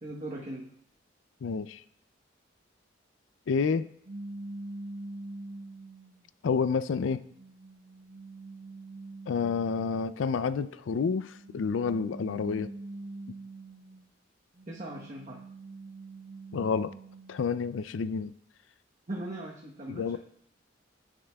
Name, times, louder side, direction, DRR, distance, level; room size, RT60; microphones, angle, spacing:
voice 1, 0.0-0.7 14.7-15.4 19.1-20.2, right 1 dB, 40° right, -3 dB, 1.1 m, -39 dB
voice 2, 1.4-1.8 3.5-3.9 6.4-7.2 9.3-12.7 16.5-16.9 17.3-18.3 19.9-20.2, left 5 dB, 85° left, 14 dB, 0.4 m, -29 dB
sound 1, 4.0-6.2 6.9-10.0 11.1-14.1 14.5-17.5, right 2 dB, 80° right, 0.9 m, -44 dB
16.0 x 7.4 x 2.3 m, 0.68 s
head